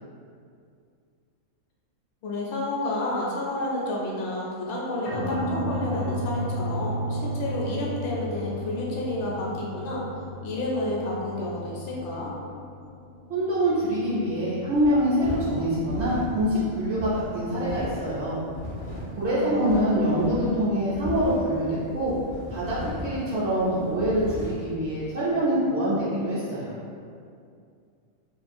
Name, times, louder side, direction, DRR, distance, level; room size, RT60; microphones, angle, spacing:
voice 1, 2.2-10.0 10.4-12.3 19.3-19.9, left 1 dB, 65° left, -4 dB, 0.8 m, -30 dB
sound 1, 5.0-23.3, equal, 90° left, 0.3 m, -35 dB
voice 2, 13.3-18.4 19.1-22.2 22.5-26.7, equal, 65° right, -11 dB, 0.8 m, -25 dB
sound 2, 14.7-24.7, equal, 15° left, 0.4 m, -37 dB
2.4 x 2.3 x 2.5 m, 2.4 s
omnidirectional pair, 1.4 m